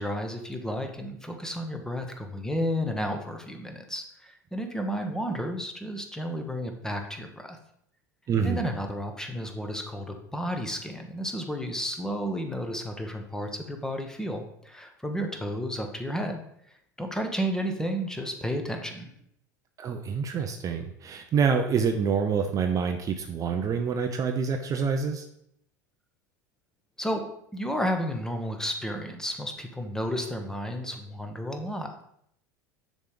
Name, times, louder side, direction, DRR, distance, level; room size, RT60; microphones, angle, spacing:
voice 1, 0.0-7.6 8.4-16.4 17.0-19.1 27.0-27.2 27.5-32.0, equal, 5° left, 4 dB, 1.0 m, -32 dB
voice 2, 8.3-8.6 19.8-25.3, right 6 dB, 35° right, 5 dB, 0.6 m, -27 dB
6.7 x 3.2 x 5.2 m, 0.72 s
hypercardioid pair, 80°, 10 cm